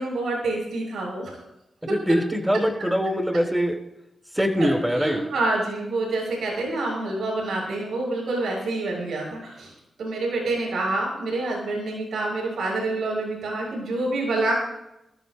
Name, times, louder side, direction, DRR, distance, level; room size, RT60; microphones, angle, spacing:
voice 1, 0.0-1.4 4.6-9.7 10.0-14.5, right 2 dB, 80° right, -2 dB, 6.9 m, -27 dB
voice 2, 1.9-3.8 4.3-5.2, equal, 10° right, 3 dB, 4.6 m, -23 dB
26.0 x 14.0 x 2.3 m, 0.86 s
supercardioid pair, 40°, 0 cm